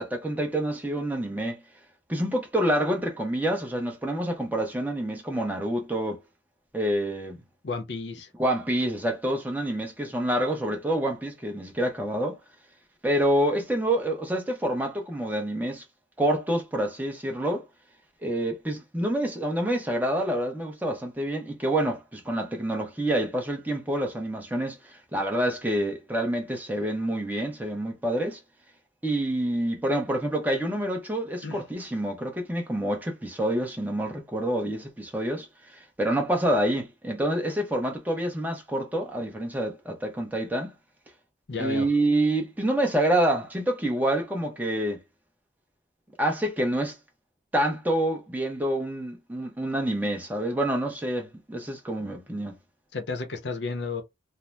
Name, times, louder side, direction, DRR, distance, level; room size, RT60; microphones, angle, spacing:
voice 1, 0.0-1.6 2.1-6.2 6.7-7.4 8.4-12.4 13.0-15.8 16.2-17.6 18.2-28.4 29.0-35.5 36.0-40.7 41.6-45.0 46.2-47.0 47.5-52.6, right 1 dB, 10° right, 0.7 m, -27 dB
voice 2, 7.6-8.3 31.4-31.6 41.5-41.9 52.9-54.0, left 4 dB, 70° left, 0.6 m, -32 dB
2.7 x 2.0 x 3.3 m
head